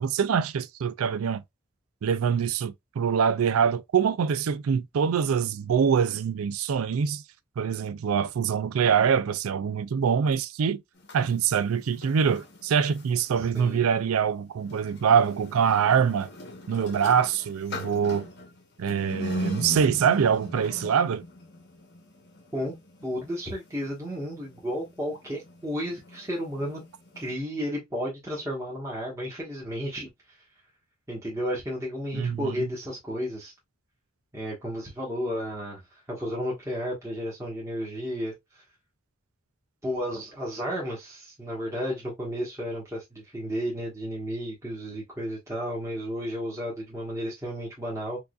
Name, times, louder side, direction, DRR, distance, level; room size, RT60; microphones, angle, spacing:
voice 1, 0.0-1.4 2.0-7.2 7.6-10.8 11.1-16.3 16.7-18.3 18.8-21.2 32.1-32.7, right 7 dB, 85° right, 0.4 m, -24 dB
sound 1, 10.9-13.7 14.6-27.3, left 2 dB, 55° left, 1.1 m, -41 dB
voice 2, 13.4-13.8 22.5-22.7 23.0-26.8 27.1-30.1 31.1-33.5 34.3-35.8 36.1-38.3 39.8-48.2, equal, 15° right, 1.3 m, -32 dB
4.7 x 2.6 x 2.3 m
head